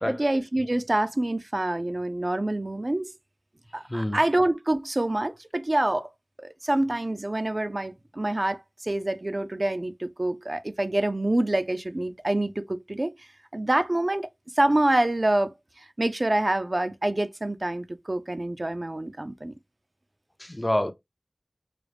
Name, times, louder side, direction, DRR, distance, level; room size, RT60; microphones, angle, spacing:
voice 1, 0.1-3.1 3.7-6.1 6.6-13.1 13.5-14.3 14.6-19.5, right 1 dB, 45° right, 0.4 m, -26 dB
voice 2, 20.4-20.9, left 1 dB, 25° left, 0.5 m, -27 dB
4.9 x 2.0 x 3.2 m
wide cardioid pair, 55°, 0 cm